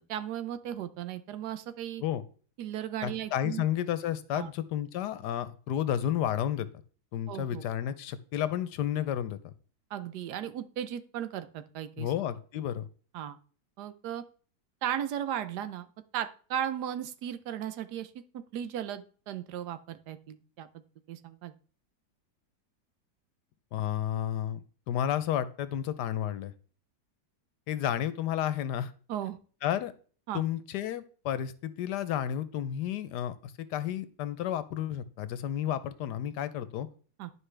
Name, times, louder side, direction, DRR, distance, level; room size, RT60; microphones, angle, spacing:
voice 1, 0.1-2.0 2.6-3.6 4.3-4.5 7.3-7.6 9.9-12.1 13.1-13.4 13.8-14.2 14.8-15.9 16.1-20.7 21.1-21.5 29.1-29.4 30.3-30.4 37.2-37.3, right 10 dB, 75° right, 11 dB, 1.2 m, -36 dB
voice 2, 3.0-6.7 7.1-9.5 12.0-12.8 23.7-26.5 27.7-28.9 29.6-29.9 30.3-36.9, left 11 dB, 80° left, 14 dB, 1.2 m, -31 dB
11.5 x 4.9 x 3.3 m, 0.41 s
omnidirectional pair, 1.8 m